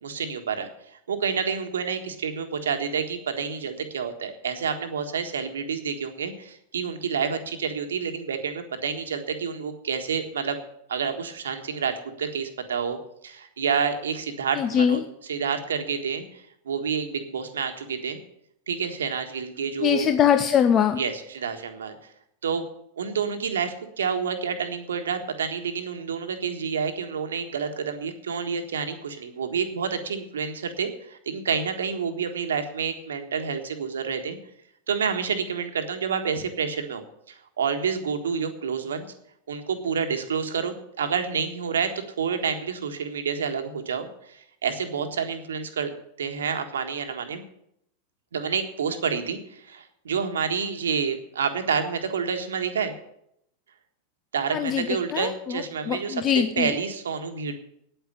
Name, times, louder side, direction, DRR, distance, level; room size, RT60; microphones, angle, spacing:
voice 1, 0.0-10.6 10.9-13.0 13.2-15.0 15.3-18.2 18.7-20.1 21.0-21.9 22.4-22.6 23.0-34.4 34.9-39.1 39.5-41.9 42.2-45.9 46.2-47.4 48.3-52.9 54.3-56.2 56.6-57.5, right 6 dB, 65° right, 7 dB, 1.5 m, -29 dB
voice 2, 14.6-15.0 19.8-21.0 54.5-54.9 55.1-56.7, left 8 dB, 30° left, 8 dB, 0.7 m, -22 dB
9.4 x 9.1 x 8.5 m, 0.75 s
figure-of-eight pair, 90°, 0 cm